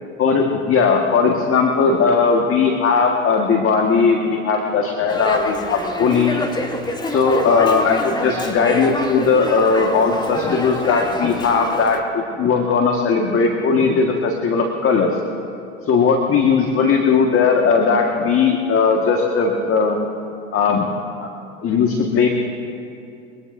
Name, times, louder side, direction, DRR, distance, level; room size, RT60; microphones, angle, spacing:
voice 1, 0.2-6.4 7.1-15.1 15.9-20.0 20.5-20.9 21.2-21.3 21.6-22.3, left 5 dB, 35° left, 2 dB, 1.8 m, -18 dB
Dog, 5.1-12.0, left 1 dB, 10° left, 1.6 m, -27 dB
23.5 x 18.5 x 2.7 m, 2.6 s
hypercardioid pair, 85°, 36 cm